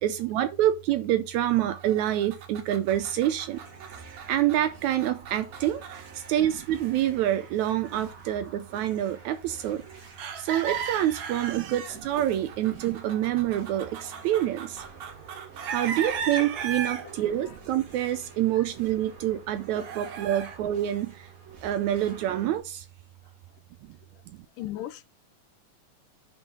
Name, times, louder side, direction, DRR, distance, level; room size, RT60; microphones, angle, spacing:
voice 1, 0.0-3.6 4.3-9.8 10.4-14.8 15.7-21.3 21.6-22.9, right 12 dB, 80° right, 1.8 m, -27 dB
sound 1, 1.6-8.0 10.2-17.1 19.7-20.6, right 7 dB, 65° right, 1.5 m, -37 dB
sound 2, 2.9-22.6, right 4 dB, 45° right, 1.1 m, -49 dB
voice 2, 24.6-25.0, left 14 dB, 85° left, 2.4 m, -37 dB
7.9 x 4.5 x 5.1 m
omnidirectional pair, 3.7 m